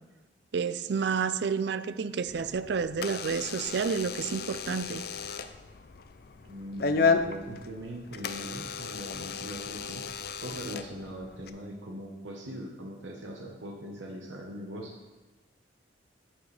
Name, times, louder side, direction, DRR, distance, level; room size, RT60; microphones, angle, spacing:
voice 1, 0.5-5.1, right 5 dB, 60° right, 14 dB, 0.4 m, -30 dB
Door / Alarm, 2.3-11.5, left 5 dB, 55° left, 0.5 m, -33 dB
voice 2, 6.5-10.0 10.4-14.9, equal, 80° right, 1 dB, 1.1 m, -41 dB
11.0 x 7.3 x 3.3 m, 1.2 s
head